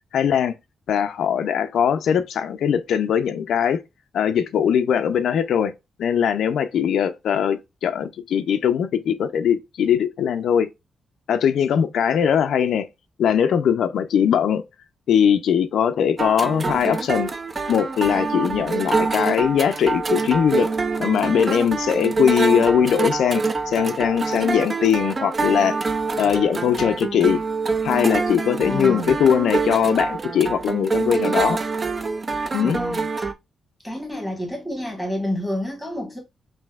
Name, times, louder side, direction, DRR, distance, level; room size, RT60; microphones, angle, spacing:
voice 1, 0.1-0.5 0.9-3.8 4.1-5.7 6.0-10.7 11.3-12.9 13.2-14.6 15.1-17.3 17.7-20.7 21.0-25.8 26.2-27.4 27.8-31.6 32.5-32.8, left 8 dB, 75° left, 0.4 m, -20 dB
sound 1, 16.2-33.3, right 4 dB, 25° right, 0.3 m, -25 dB
voice 2, 28.6-29.2 32.6-33.1 33.8-36.2, left 1 dB, ahead, 1.2 m, -29 dB
5.3 x 2.6 x 2.3 m
wide cardioid pair, 175°, 0 cm